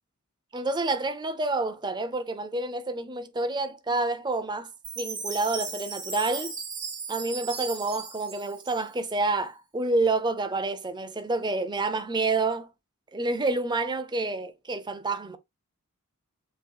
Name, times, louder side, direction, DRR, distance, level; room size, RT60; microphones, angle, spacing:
voice 1, 0.5-4.7 5.0-6.5 7.1-12.7 13.1-15.4, right 2 dB, 20° right, 0.6 m, -28 dB
Chime, 4.8-9.2, right 5 dB, 35° right, 2.2 m, -37 dB
7.2 x 3.1 x 2.3 m
head